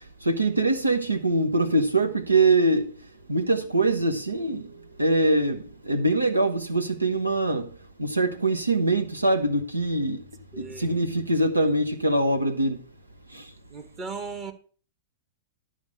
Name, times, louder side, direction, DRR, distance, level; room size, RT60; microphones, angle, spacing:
voice 1, 0.2-2.9 3.3-4.7 5.0-7.7 8.0-10.2 10.6-12.8 13.3-13.4, right 2 dB, 85° right, 1.2 m, -23 dB
voice 2, 10.5-11.0 13.7-14.5, right 4 dB, 30° right, 1.5 m, -37 dB
11.5 x 5.0 x 7.0 m
figure-of-eight pair, 100°, 0 cm